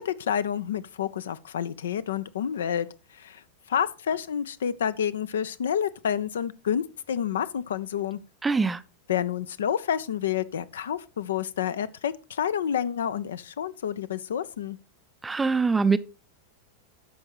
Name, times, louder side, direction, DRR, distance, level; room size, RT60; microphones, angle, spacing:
voice 1, 0.0-2.9 3.2-3.4 3.7-8.2 9.1-14.8, left 9 dB, 65° left, 0.5 m, -29 dB
voice 2, 8.4-8.8 15.2-16.0, right 4 dB, 10° right, 0.5 m, -23 dB
13.5 x 5.3 x 3.0 m
figure-of-eight pair, 90°, 0 cm